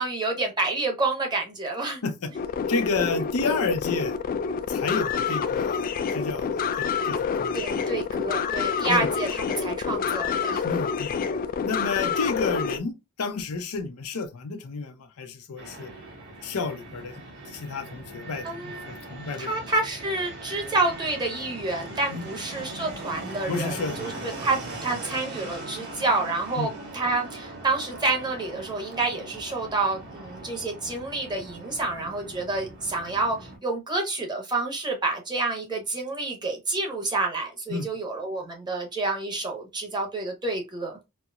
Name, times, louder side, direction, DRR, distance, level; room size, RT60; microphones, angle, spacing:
voice 1, 0.0-2.0 7.5-10.6 18.4-18.8 19.4-41.0, right 3 dB, 20° right, 0.9 m, -28 dB
sound 1, 2.3-12.8, left 6 dB, 40° left, 0.3 m, -27 dB
voice 2, 2.7-4.2 4.7-7.6 8.9-9.1 10.6-11.2 11.6-15.9 16.4-19.7 22.1-22.3 23.5-24.3 26.6-26.8 37.7-37.9, left 4 dB, 85° left, 0.6 m, -31 dB
Fixed-wing aircraft airplane, 15.6-33.6, right 2 dB, 55° right, 1.9 m, -40 dB
4.2 x 2.0 x 2.3 m
head